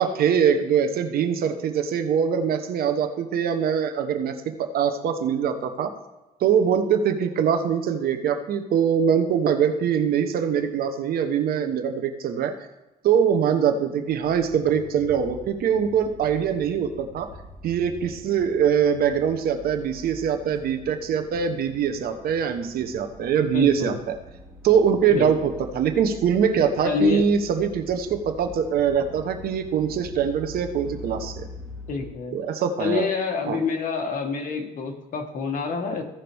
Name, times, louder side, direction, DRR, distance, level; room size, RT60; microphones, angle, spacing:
voice 1, 0.0-5.9 6.4-12.5 13.0-17.3 17.6-24.1 24.6-31.5 32.3-33.1 33.5-33.6, right 7 dB, 65° right, 7 dB, 1.1 m, -23 dB
sound 1, 14.1-32.1, left 1 dB, ahead, 3.4 m, -44 dB
voice 2, 23.5-24.0 25.1-25.3 26.8-27.3 31.9-32.4 32.8-36.0, left 5 dB, 50° left, 3 dB, 1.8 m, -26 dB
15.5 x 5.8 x 3.5 m, 1.0 s
cardioid pair, 110°, 17 cm